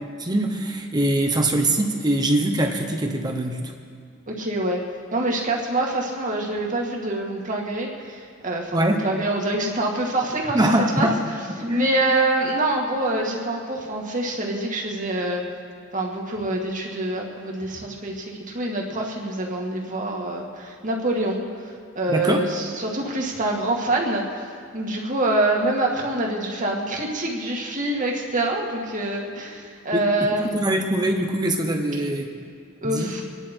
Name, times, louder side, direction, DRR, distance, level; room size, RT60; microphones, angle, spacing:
voice 1, 0.2-3.7 8.7-9.1 10.5-11.2 11.6-11.9 22.1-22.5 29.9-30.1 30.4-32.3 32.8-33.2, right 1 dB, 20° right, 3 dB, 1.0 m, -23 dB
voice 2, 4.3-4.8 5.1-11.2 11.6-15.4 15.9-21.4 21.9-24.3 24.7-30.5 32.8-33.2, right 2 dB, 40° right, -1 dB, 2.1 m, -25 dB
25.5 x 10.5 x 4.6 m, 2.2 s
head